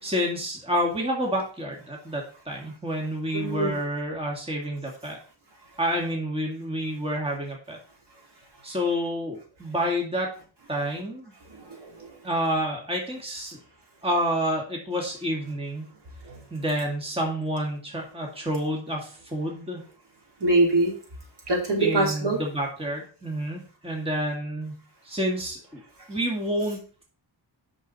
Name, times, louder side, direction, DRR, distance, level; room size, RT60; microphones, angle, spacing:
voice 1, 0.0-5.2 5.8-7.8 8.6-10.3 10.7-11.3 12.2-13.6 14.0-15.9 16.5-19.8 21.8-24.8 25.1-25.8 26.1-27.0, equal, 10° right, 0 dB, 1.9 m, -29 dB
voice 2, 3.3-3.8 11.5-12.2 16.2-16.4 20.4-20.9 21.5-22.4, right 2 dB, 65° right, -1 dB, 3.3 m, -24 dB
8.8 x 6.2 x 4.1 m, 0.40 s
wide cardioid pair, 140°, 45 cm